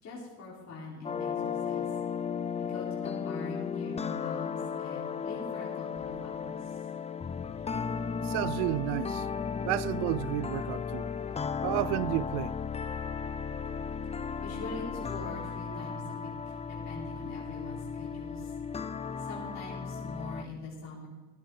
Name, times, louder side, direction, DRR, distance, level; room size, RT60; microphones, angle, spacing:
voice 1, 0.0-1.9 2.6-6.7 14.4-18.5 19.2-21.1, left 2 dB, 45° left, 4.7 m, -43 dB
sound 1, 1.0-20.4, left 6 dB, 20° left, 0.5 m, -35 dB
voice 2, 8.2-9.3 9.7-11.1 11.6-12.5, right 18 dB, 90° right, 0.5 m, -31 dB
17.0 x 11.0 x 4.1 m
supercardioid pair, 100°, 36 cm